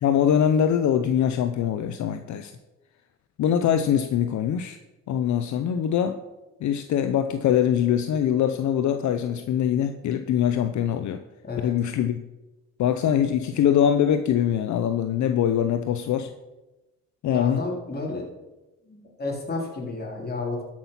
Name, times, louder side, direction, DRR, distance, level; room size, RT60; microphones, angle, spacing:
voice 1, 0.0-2.5 3.4-4.8 5.1-6.2 6.6-11.2 11.6-12.2 12.8-16.3 17.2-17.6, left 9 dB, 70° left, 9 dB, 0.7 m, -23 dB
voice 2, 17.3-18.3 18.8-20.6, left 3 dB, 30° left, -1 dB, 3.6 m, -31 dB
12.5 x 6.1 x 5.8 m, 1.1 s
cardioid pair, 90°, 30 cm